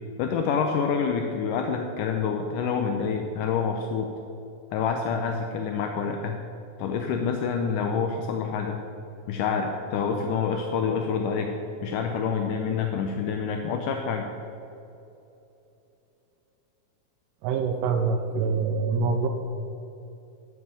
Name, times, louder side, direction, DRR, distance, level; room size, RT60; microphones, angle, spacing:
voice 1, 0.2-4.1 4.7-6.4 6.8-8.8 9.3-11.5 11.8-14.3, left 6 dB, 80° left, 4 dB, 2.3 m, -27 dB
voice 2, 17.4-19.3, right 4 dB, 85° right, 5 dB, 2.3 m, -25 dB
12.5 x 7.4 x 6.9 m, 2.9 s
omnidirectional pair, 3.8 m